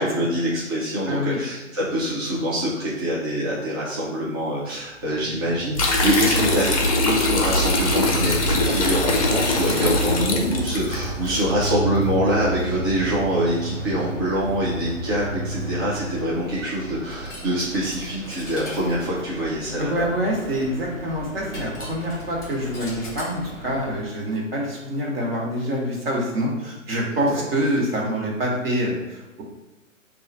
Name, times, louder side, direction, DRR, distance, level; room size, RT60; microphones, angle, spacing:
voice 1, 0.0-20.1 27.1-27.4, right 1 dB, 20° right, -7 dB, 0.5 m, -25 dB
voice 2, 1.0-1.4 19.8-29.4, equal, 50° right, -2 dB, 1.4 m, -26 dB
sound 1, 4.9-17.6, right 1 dB, 80° right, 1.3 m, -32 dB
sound 2, 5.8-11.0, left 2 dB, 30° left, 0.6 m, -22 dB
Coin (dropping), 7.5-24.1, right 1 dB, 10° left, 1.1 m, -39 dB
3.6 x 2.4 x 4.5 m, 1.1 s
figure-of-eight pair, 130°, 39 cm